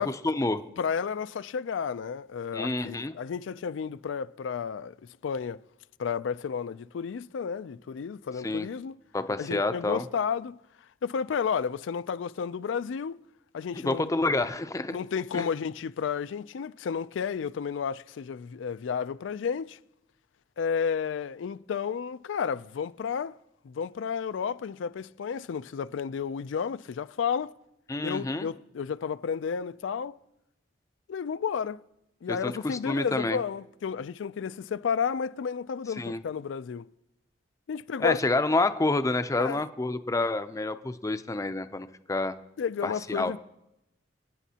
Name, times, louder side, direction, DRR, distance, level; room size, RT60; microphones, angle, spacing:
voice 1, 0.0-0.6 2.5-3.1 8.4-8.7 9.1-10.0 13.8-15.0 15.3-15.5 27.9-28.5 32.3-33.4 36.0-36.2 38.0-42.4 42.8-43.3, left 2 dB, 15° left, 0.5 m, -28 dB
voice 2, 0.8-5.0 5.2-5.6 6.0-8.9 9.4-10.6 11.0-13.2 13.5-14.1 14.9-19.8 20.6-23.4 23.6-27.5 28.0-30.2 31.1-31.8 32.2-36.9 37.7-38.2 39.4-39.6 42.6-43.4, left 6 dB, 80° left, 0.4 m, -32 dB
26.0 x 9.0 x 2.8 m
head